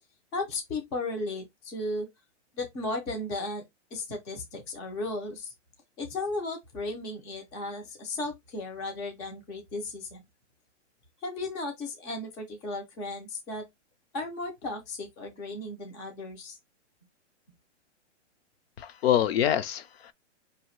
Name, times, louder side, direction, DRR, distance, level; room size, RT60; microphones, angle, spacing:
voice 1, 0.3-2.1 2.5-3.6 3.9-5.5 6.0-10.2 11.2-13.6 14.1-16.5, left 2 dB, 10° left, 0.3 m, -35 dB
voice 2, 18.8-20.1, left 10 dB, 55° left, 0.6 m, -26 dB
4.5 x 2.8 x 3.0 m
hypercardioid pair, 150°, 37 cm